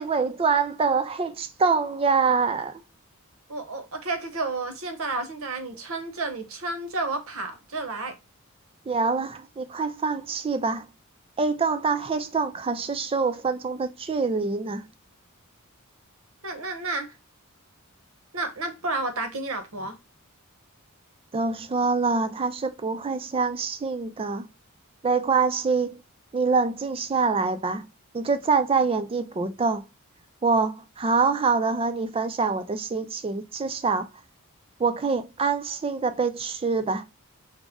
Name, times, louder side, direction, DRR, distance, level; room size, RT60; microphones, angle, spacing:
voice 1, 0.0-2.8 8.9-10.9 11.4-14.8 21.3-24.5 25.0-26.0 26.3-27.9 28.1-29.8 30.4-34.1 34.8-37.1, right 4 dB, 25° right, 0.3 m, -25 dB
voice 2, 3.5-8.1 16.4-17.1 18.3-20.0, right 2 dB, 65° right, 0.8 m, -31 dB
5.0 x 2.1 x 3.5 m
head